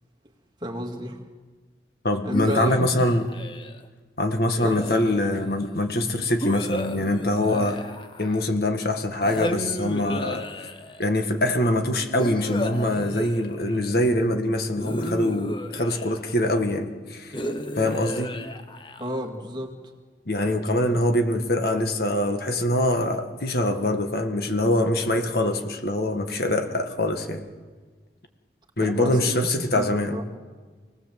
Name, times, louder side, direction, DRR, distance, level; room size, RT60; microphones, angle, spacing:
voice 1, 0.6-1.2 2.2-2.9 4.6-4.9 19.0-19.8 20.9-21.0 28.8-30.2, equal, 25° right, 2 dB, 2.2 m, -32 dB
voice 2, 2.0-3.2 4.2-7.8 8.2-10.7 11.0-17.4 17.8-18.4 20.3-27.5 28.8-30.2, left 1 dB, 60° left, 5 dB, 1.8 m, -24 dB
sound 1, 2.3-3.8 4.6-5.5 6.4-8.6 9.2-11.1 12.2-13.9 14.8-16.4 17.3-19.3, equal, 30° left, 1.2 m, -33 dB
25.5 x 18.5 x 7.6 m, 1.4 s
head